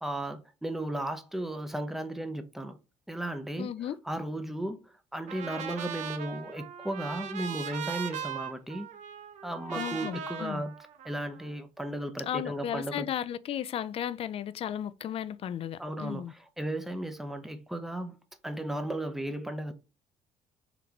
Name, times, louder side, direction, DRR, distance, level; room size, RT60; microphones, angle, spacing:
voice 1, 0.0-2.8 3.1-3.8 4.0-8.9 9.4-10.8 11.0-13.1 15.8-18.2 18.4-19.7, right 1 dB, ahead, 0.6 m, -35 dB
voice 2, 3.6-4.0 9.7-10.6 12.2-16.3, left 10 dB, 45° left, 0.4 m, -35 dB
Trumpet, 5.3-11.5, right 8 dB, 65° right, 0.7 m, -39 dB
3.9 x 3.3 x 2.9 m
cardioid pair, 90°, 13 cm